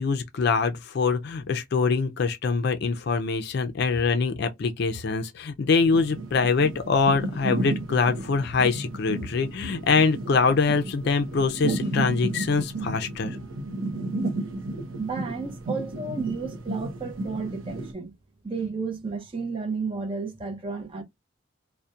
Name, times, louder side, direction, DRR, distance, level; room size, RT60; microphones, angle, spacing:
voice 1, 0.0-13.4, left 4 dB, 55° left, 0.4 m, -24 dB
sound 1, 5.8-17.9, right 2 dB, 85° right, 0.6 m, -33 dB
voice 2, 14.9-18.1 18.4-21.0, right 4 dB, 25° right, 0.5 m, -32 dB
2.7 x 2.0 x 2.3 m
head